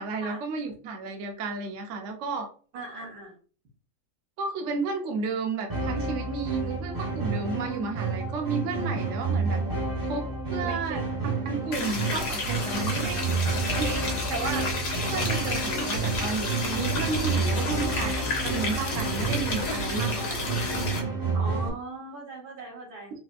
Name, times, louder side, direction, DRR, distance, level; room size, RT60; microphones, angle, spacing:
voice 1, 0.0-2.5 4.4-9.6 10.0-11.0 11.5-13.2 13.8-14.0 14.3-14.7 15.1-20.5, right 4 dB, 60° right, 3 dB, 0.9 m, -32 dB
voice 2, 2.7-3.3 10.6-11.0 21.3-23.1, right 3 dB, 80° right, -1 dB, 1.7 m, -39 dB
sound 1, 5.7-21.7, right 4 dB, 20° right, 0.5 m, -30 dB
sound 2, 11.7-21.0, left 2 dB, 85° left, 1.4 m, -31 dB
4.1 x 2.5 x 2.4 m, 0.40 s
omnidirectional pair, 1.7 m